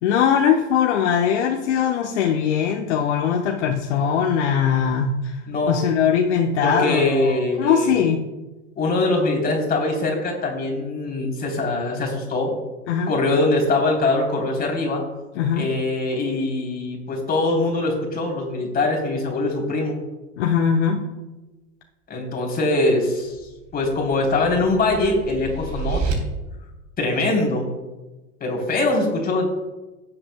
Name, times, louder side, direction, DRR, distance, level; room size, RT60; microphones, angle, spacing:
voice 1, 0.0-5.4 5.7-8.2 12.9-13.1 15.4-15.7 20.4-21.1, left 7 dB, 65° left, 2 dB, 1.0 m, -21 dB
voice 2, 6.6-8.0 8.8-12.5 13.1-15.0 15.6-20.0 22.1-23.4 23.7-26.0 27.0-27.7 28.4-29.5, left 2 dB, 25° left, 0 dB, 3.4 m, -22 dB
sound 1, 23.3-26.1, right 5 dB, 50° right, 3.3 m, -30 dB
17.5 x 7.8 x 2.2 m, 1.1 s
hypercardioid pair, 90°, 37 cm